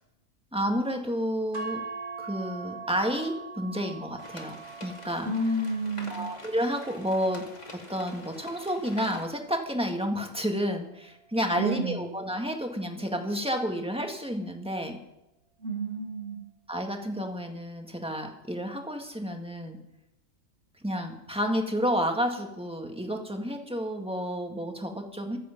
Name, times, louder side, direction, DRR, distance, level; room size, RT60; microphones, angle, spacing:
voice 1, 0.5-1.9 2.2-5.3 6.1-7.5 7.7-15.0 16.7-19.8 20.8-25.4, equal, 5° right, 3 dB, 1.9 m, -30 dB
sound 1, 1.5-9.8, right 4 dB, 80° right, 2.6 m, -43 dB
sound 2, 4.2-9.2, left 1 dB, 30° left, 2.5 m, -46 dB
voice 2, 5.2-6.2 11.5-12.1 15.6-16.4, right 1 dB, 60° right, 0 dB, 3.0 m, -30 dB
24.5 x 8.5 x 5.4 m, 0.88 s
omnidirectional pair, 1.4 m